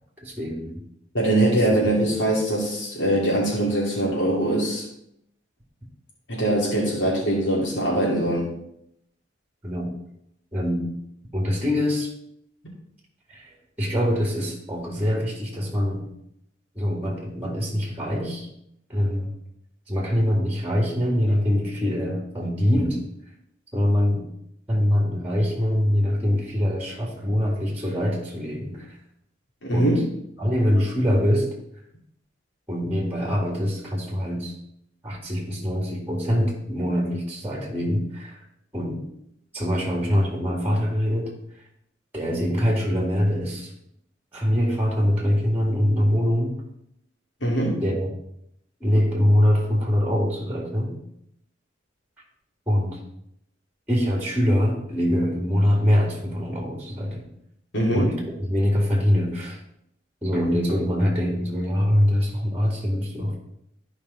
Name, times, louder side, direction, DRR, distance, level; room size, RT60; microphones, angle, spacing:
voice 1, 0.2-0.8 1.5-1.7 9.6-9.9 10.5-10.9 11.3-12.1 13.3-16.1 16.8-18.5 18.9-19.3 19.9-23.0 23.7-24.2 24.7-29.0 29.7-30.0 30.4-31.5 32.7-34.6 35.0-38.4 38.7-39.0 39.5-41.3 42.1-43.7 44.3-46.6 47.8-48.1 48.8-51.0 52.7-53.0 53.9-57.3 57.8-59.6 60.2-63.4, equal, 10° right, -2 dB, 1.9 m, -24 dB
voice 2, 1.1-4.8 6.3-8.5 29.6-30.0 47.4-47.8 57.7-58.0, right 1 dB, 80° left, -4 dB, 2.9 m, -22 dB
13.5 x 5.2 x 4.1 m, 0.76 s
head